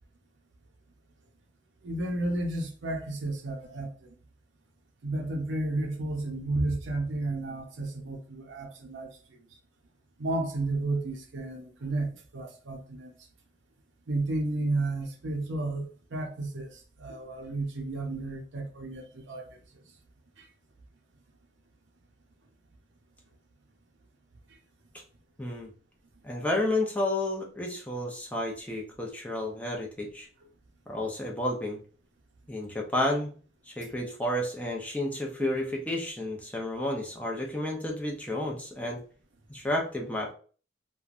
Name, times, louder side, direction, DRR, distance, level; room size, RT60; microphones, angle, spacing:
voice 1, 1.8-3.9 5.0-9.1 10.2-13.1 14.1-16.7 17.0-19.4, right 2 dB, 85° right, 0.6 m, -32 dB
voice 2, 25.4-25.7 26.2-30.3 30.9-31.8 32.5-33.3 33.7-39.0 39.5-40.3, left 1 dB, 10° left, 0.6 m, -31 dB
3.0 x 2.2 x 2.4 m
head